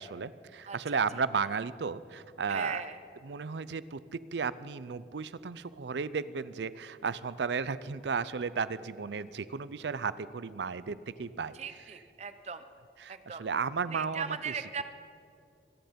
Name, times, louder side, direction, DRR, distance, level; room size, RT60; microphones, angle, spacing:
voice 1, 0.0-2.8 3.2-4.0 4.3-11.6 13.0-14.5, right 5 dB, 80° right, 17 dB, 0.5 m, -34 dB
voice 2, 0.7-1.0 2.5-3.0 11.5-12.6 13.1-13.4 13.9-14.8, right 6 dB, 40° right, 11 dB, 0.7 m, -38 dB
24.5 x 10.0 x 5.2 m, 2.5 s
head